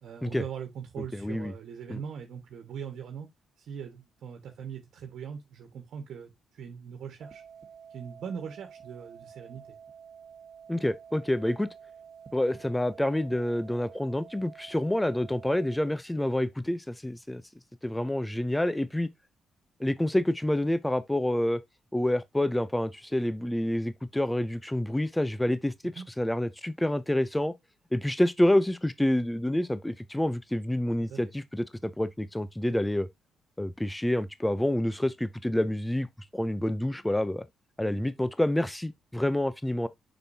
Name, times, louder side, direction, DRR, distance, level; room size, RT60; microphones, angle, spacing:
voice 1, 0.0-3.3 3.6-7.4 7.9-9.8 26.0-26.1 31.0-31.3, right 7 dB, 70° right, 1.4 m, -41 dB
voice 2, 1.2-1.5 1.9-2.0 10.7-11.7 12.3-17.4 17.8-19.1 19.8-21.6 21.9-27.5 27.9-33.1 33.6-36.1 36.3-37.4 37.8-39.9, left 1 dB, 5° left, 0.5 m, -28 dB
sound 1, 7.2-15.8, right 7 dB, 35° right, 1.5 m, -50 dB
6.8 x 6.1 x 2.7 m
cardioid pair, 90°, 0 cm